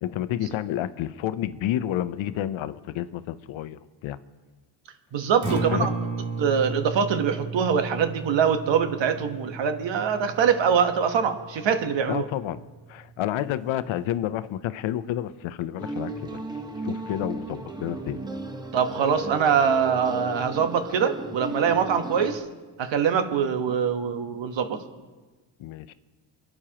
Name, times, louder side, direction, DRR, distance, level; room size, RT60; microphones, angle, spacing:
voice 1, 0.0-4.2 5.5-5.9 12.1-12.6 12.9-16.5 16.8-18.2 25.6-25.9, left 12 dB, 75° left, 14 dB, 0.7 m, -30 dB
voice 2, 5.1-5.9 6.4-12.2 18.7-22.4 22.8-24.8, right 7 dB, 65° right, 7 dB, 1.3 m, -23 dB
Acoustic guitar, 5.3-13.5, right 4 dB, 40° right, 2.7 m, -35 dB
sound 1, 15.8-22.4, right 2 dB, 10° right, 1.0 m, -35 dB
28.0 x 9.9 x 3.0 m, 1.3 s
cardioid pair, 100°, 48 cm